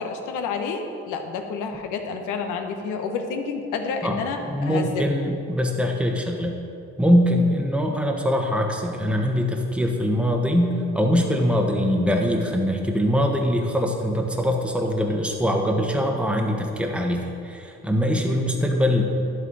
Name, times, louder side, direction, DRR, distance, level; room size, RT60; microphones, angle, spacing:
voice 1, 0.0-5.0, left 5 dB, 70° left, 5 dB, 1.2 m, -29 dB
voice 2, 4.5-6.6 7.0-19.0, equal, 5° right, 1 dB, 1.3 m, -22 dB
11.0 x 8.0 x 4.2 m, 2.6 s
hypercardioid pair, 65°, 32 cm